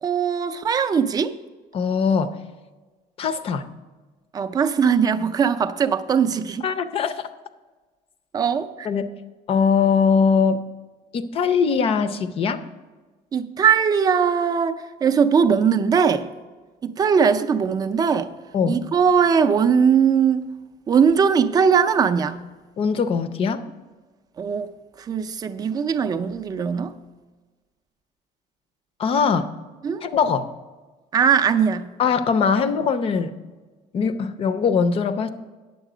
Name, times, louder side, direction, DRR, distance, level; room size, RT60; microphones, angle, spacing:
voice 1, 0.0-1.3 4.3-6.7 8.3-8.9 13.3-16.3 16.8-18.3 18.7-20.5 20.9-22.4 24.4-24.7 25.0-26.9 29.8-30.0 31.1-31.9, right 6 dB, 25° right, 8 dB, 0.4 m, -20 dB
voice 2, 1.7-2.3 3.2-3.7 6.6-7.1 8.9-9.1 9.5-10.6 11.1-12.6 18.5-18.8 22.8-23.6 29.0-29.5 30.0-30.5 32.0-33.3 33.9-35.3, left 6 dB, 40° left, 10 dB, 0.5 m, -21 dB
9.2 x 7.2 x 4.9 m, 1.3 s
cardioid pair, 165°, 15 cm